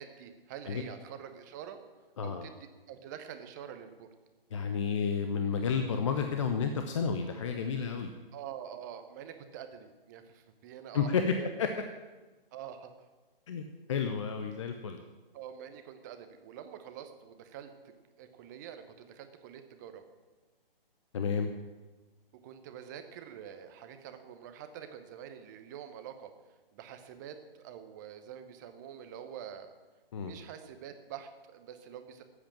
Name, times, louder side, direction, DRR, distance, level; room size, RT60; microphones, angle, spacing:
voice 1, 0.0-1.8 2.2-2.5 2.9-4.1 8.3-11.5 12.5-12.9 15.3-20.0 22.4-26.3 26.7-29.7 30.2-32.2, right 9 dB, 20° right, 8 dB, 0.8 m, -46 dB
voice 2, 4.5-8.1 10.9-11.2 11.6-11.7 13.5-15.0 21.1-21.5 30.1-30.3, left 6 dB, 30° left, 6 dB, 0.7 m, -31 dB
13.0 x 8.1 x 7.5 m, 1.2 s
figure-of-eight pair, 135°, 29 cm